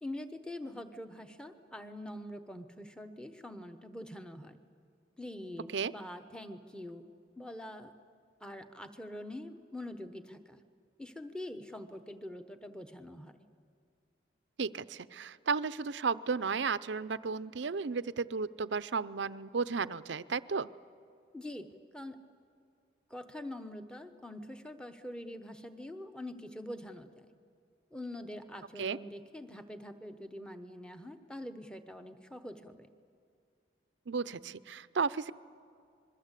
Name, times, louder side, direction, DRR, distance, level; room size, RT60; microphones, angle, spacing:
voice 1, 0.0-4.6 5.2-7.1 7.4-7.9 8.4-10.6 11.0-13.3 21.3-21.7 21.9-22.2 23.1-27.3 27.9-32.9, left 1 dB, 5° left, 8 dB, 1.0 m, -44 dB
voice 2, 14.6-20.7 28.8-29.0 34.1-35.3, right 5 dB, 80° right, 16 dB, 0.6 m, -34 dB
27.5 x 22.0 x 8.3 m, 2.4 s
head